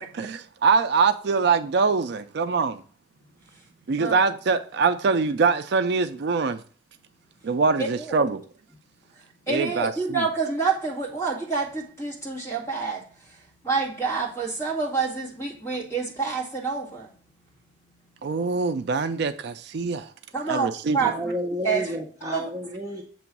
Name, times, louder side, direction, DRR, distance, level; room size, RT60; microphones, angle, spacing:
voice 1, 0.1-2.8 3.9-6.6 7.4-8.4 9.5-10.2 18.2-20.0 20.5-21.1, right 4 dB, 60° right, 0.4 m, -23 dB
voice 2, 9.5-13.0 13.6-17.1 20.3-20.7 20.9-21.3 21.6-22.0 22.3-22.5, right 4 dB, 15° left, 2.0 m, -27 dB
voice 3, 21.0-23.0, equal, 20° right, 0.8 m, -31 dB
7.7 x 3.1 x 5.9 m
head